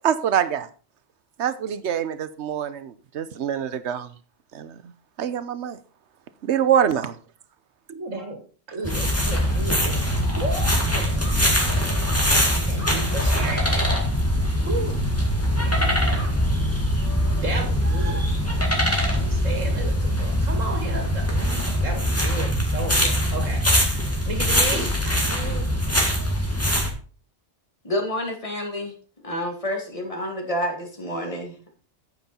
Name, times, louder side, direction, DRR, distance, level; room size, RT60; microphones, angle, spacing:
voice 1, 0.0-0.7 1.4-4.1 4.5-4.9 5.2-5.8 6.4-7.2, right 9 dB, 65° right, 14 dB, 1.1 m, -25 dB
voice 2, 7.9-8.4 8.7-10.7 11.1-11.2 12.7-14.0 14.7-15.1 15.6-16.4 17.4-18.3 18.9-23.6 24.3-25.8, right 3 dB, 85° right, 3 dB, 2.3 m, -33 dB
sound 1, 8.8-26.9, equal, 10° left, 1.9 m, -22 dB
voice 3, 27.8-28.9 29.2-31.7, equal, 25° left, 1 dB, 2.5 m, -29 dB
9.1 x 8.0 x 4.3 m, 0.39 s
omnidirectional pair, 1.3 m